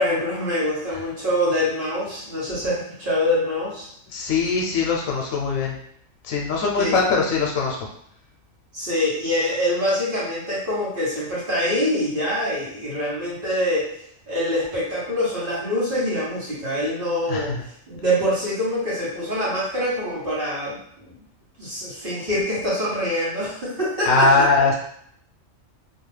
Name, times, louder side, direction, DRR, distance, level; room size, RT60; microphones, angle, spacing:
voice 1, 0.0-3.9 6.8-6.9 8.7-14.0 14.3-17.5 17.9-21.1 21.6-24.5, left 1 dB, 45° right, -8 dB, 1.0 m, -25 dB
voice 2, 4.1-5.8 6.2-7.8 17.3-17.6 24.1-24.8, left 4 dB, 85° left, -1 dB, 1.0 m, -21 dB
2.6 x 2.3 x 3.2 m, 0.68 s
omnidirectional pair, 1.4 m